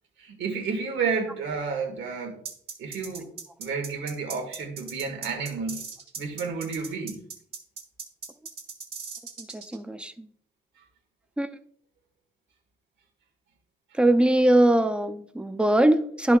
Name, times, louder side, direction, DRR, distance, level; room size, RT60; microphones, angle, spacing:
voice 1, 0.2-2.4 2.8-3.3 3.6-5.9 6.2-7.2, right 5 dB, 70° right, 2.0 m, -31 dB
sound 1, 2.4-9.8, right 6 dB, 50° right, 2.3 m, -39 dB
voice 2, 9.5-10.3 11.4-11.5 14.0-16.4, right 1 dB, 5° right, 0.7 m, -21 dB
11.0 x 5.8 x 2.5 m
cardioid pair, 90°, 20 cm